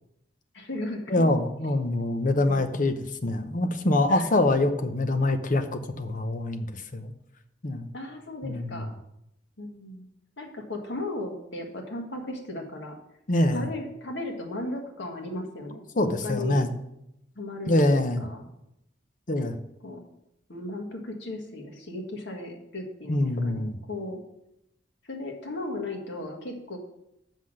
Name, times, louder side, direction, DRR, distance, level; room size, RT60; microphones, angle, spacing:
voice 1, 0.5-1.3 4.1-4.4 7.9-8.9 9.6-10.0 10.4-13.0 13.5-16.6 17.3-18.4 19.8-20.1 20.5-24.2 25.0-26.8, left 1 dB, 85° left, 2 dB, 1.7 m, -36 dB
voice 2, 1.1-2.9 3.2-7.1 7.6-7.9 8.4-8.8 13.3-13.7 16.0-16.7 17.7-18.3 19.3-19.6 23.1-23.7, left 1 dB, 50° left, 7 dB, 0.8 m, -25 dB
7.1 x 5.9 x 6.3 m, 0.82 s
head